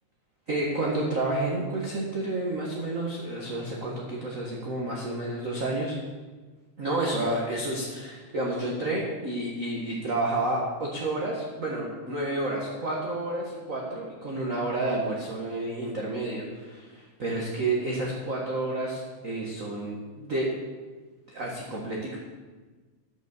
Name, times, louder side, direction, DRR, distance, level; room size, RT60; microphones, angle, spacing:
voice 1, 0.5-6.0 6.8-20.6 21.3-22.2, right 2 dB, 35° right, -3 dB, 1.3 m, -30 dB
13.5 x 6.2 x 7.2 m, 1.4 s
omnidirectional pair, 3.5 m